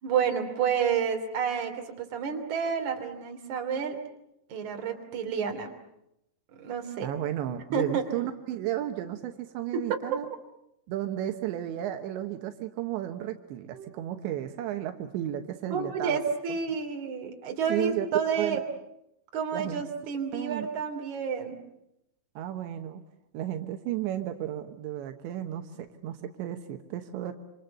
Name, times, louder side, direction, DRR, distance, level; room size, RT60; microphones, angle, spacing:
voice 1, 0.0-4.0 4.5-5.7 6.6-7.1 7.7-8.0 9.7-10.0 13.7-13.9 15.7-18.6 19.3-21.6, right 6 dB, 45° right, 4 dB, 4.0 m, -30 dB
voice 2, 7.0-10.3 10.9-16.2 17.7-18.1 18.4-18.6 19.5-19.8 20.3-20.7 22.4-23.0 23.3-27.3, right 12 dB, 85° right, 6 dB, 3.5 m, -33 dB
26.5 x 26.5 x 8.0 m, 0.84 s
omnidirectional pair, 5.1 m